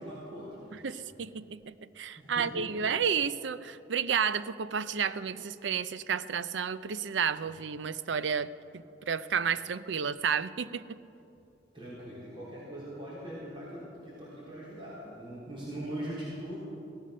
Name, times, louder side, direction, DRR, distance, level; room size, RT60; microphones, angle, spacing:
voice 1, 0.0-0.9 2.2-2.9 11.7-16.6, right 1 dB, 30° right, -7 dB, 3.8 m, -41 dB
voice 2, 0.8-11.0, right 7 dB, 75° right, 15 dB, 0.5 m, -31 dB
17.0 x 13.5 x 6.4 m, 2.8 s
head